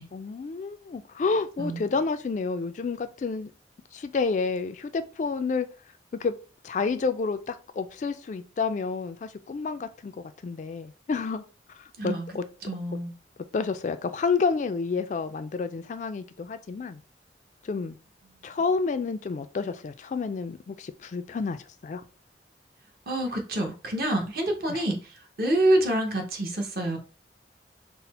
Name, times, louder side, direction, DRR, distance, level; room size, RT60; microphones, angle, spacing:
voice 1, 0.0-3.5 3.9-5.7 6.2-6.3 6.6-10.1 10.4-11.4 12.0-12.4 13.5-17.0 17.6-18.0 18.4-22.0 24.7-24.8, left 4 dB, 45° left, 0.3 m, -29 dB
voice 2, 12.6-13.1 23.1-27.0, right 1 dB, 55° right, 1.0 m, -27 dB
4.1 x 2.1 x 4.1 m
head